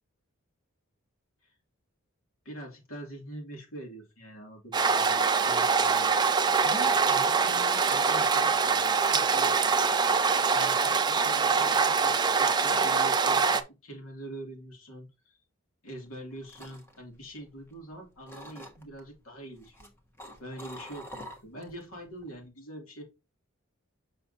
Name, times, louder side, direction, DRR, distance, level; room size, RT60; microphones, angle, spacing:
voice 1, 2.4-9.6 10.5-15.4 15.8-19.9 20.4-23.0, right 1 dB, 75° left, 2.6 m, -44 dB
sound 1, 4.7-13.6, right 5 dB, 20° right, 0.4 m, -24 dB
sound 2, 16.1-17.9 18.3-19.0 19.6-21.8 22.1-22.5, equal, 10° left, 1.1 m, -46 dB
6.8 x 5.6 x 2.7 m
head